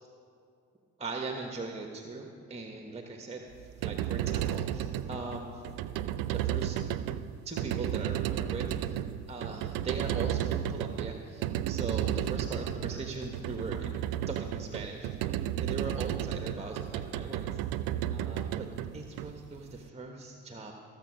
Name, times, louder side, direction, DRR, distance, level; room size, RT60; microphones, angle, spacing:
voice 1, 1.0-5.6 6.3-6.8 7.4-9.0 9.3-14.0 14.3-15.1 15.6-17.6 18.1-18.7 18.9-20.7, right 3 dB, 15° right, 2 dB, 1.2 m, -40 dB
sound 1, 3.6-19.8, right 11 dB, 65° right, 0.6 m, -33 dB
14.5 x 7.1 x 6.3 m, 2.4 s
hypercardioid pair, 60°, 36 cm